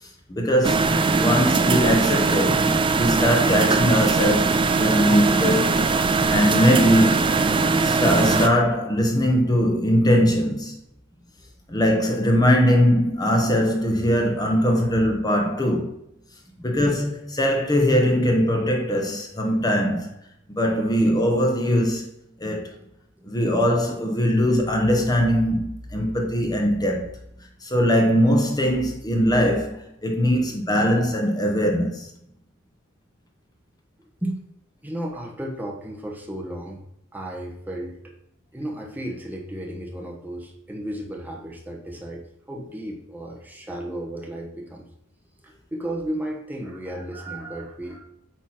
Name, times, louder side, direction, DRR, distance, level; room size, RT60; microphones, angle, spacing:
voice 1, 0.0-2.6 2.9-5.6 6.3-7.5 7.8-10.8 11.7-15.9 16.6-20.1 20.5-22.1 22.4-22.7 23.3-27.1 27.6-32.1, equal, 20° left, 0.9 m, -21 dB
sound 1, 0.6-8.5, right 4 dB, 25° right, 0.4 m, -20 dB
voice 2, 34.8-36.8 37.1-38.0 38.5-44.9 45.4-48.0, right 1 dB, 10° right, 0.9 m, -34 dB
8.5 x 3.0 x 5.8 m
head